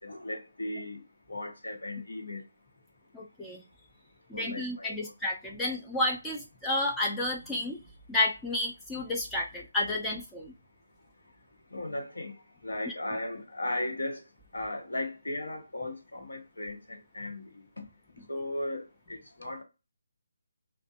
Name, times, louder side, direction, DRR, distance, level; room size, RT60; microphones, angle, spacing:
voice 1, 0.0-1.0 1.3-2.4 4.3-5.1 11.7-14.3 14.5-17.8 18.3-19.6, left 1 dB, 85° left, 0.9 m, -36 dB
voice 2, 3.1-3.6 4.3-7.8 8.1-10.5, left 2 dB, 10° left, 0.4 m, -31 dB
2.4 x 2.1 x 2.7 m
figure-of-eight pair, 155°, 0 cm